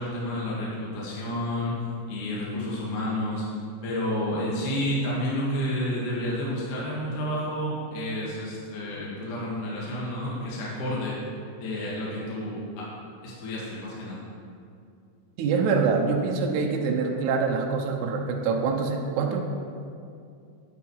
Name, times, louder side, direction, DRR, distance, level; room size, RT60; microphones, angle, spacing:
voice 1, 0.0-1.8 2.1-3.4 3.8-11.2 11.5-12.8 13.2-14.2, left 1 dB, 55° left, -6 dB, 2.8 m, -30 dB
voice 2, 15.4-19.4, right 5 dB, 85° right, 1 dB, 1.7 m, -25 dB
10.5 x 9.4 x 4.7 m, 2.4 s
omnidirectional pair, 5.0 m